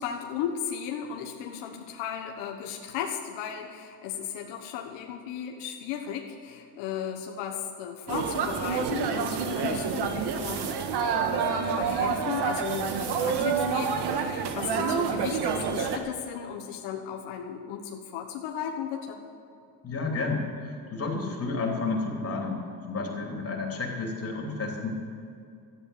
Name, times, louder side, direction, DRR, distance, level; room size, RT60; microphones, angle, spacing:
voice 1, 0.0-10.7 11.6-19.2, left 8 dB, 90° left, 1 dB, 1.3 m, -35 dB
sound 1, 8.1-16.0, right 6 dB, 65° right, 1.5 m, -28 dB
voice 2, 19.8-22.6 22.9-24.9, left 3 dB, 35° left, -1 dB, 3.3 m, -31 dB
12.5 x 9.3 x 8.5 m, 2.4 s
cardioid pair, 105°, 43 cm